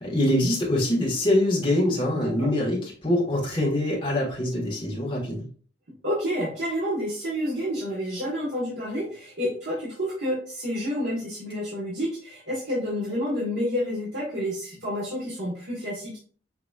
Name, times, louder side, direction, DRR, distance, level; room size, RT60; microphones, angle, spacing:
voice 1, 0.0-5.4, left 1 dB, 25° left, -4 dB, 1.5 m, -24 dB
voice 2, 6.0-16.2, equal, 75° right, -6 dB, 1.4 m, -29 dB
5.8 x 3.0 x 2.4 m, 0.44 s
head